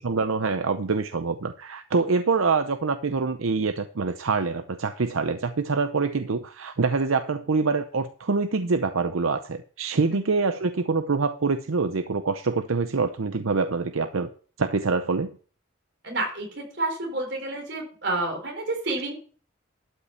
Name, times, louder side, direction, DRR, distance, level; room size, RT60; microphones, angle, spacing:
voice 1, 0.0-14.3 14.6-15.3, right 4 dB, 85° right, 9 dB, 0.7 m, -25 dB
voice 2, 16.0-19.1, right 2 dB, 55° right, 2 dB, 4.4 m, -29 dB
12.5 x 5.7 x 7.0 m, 0.41 s
head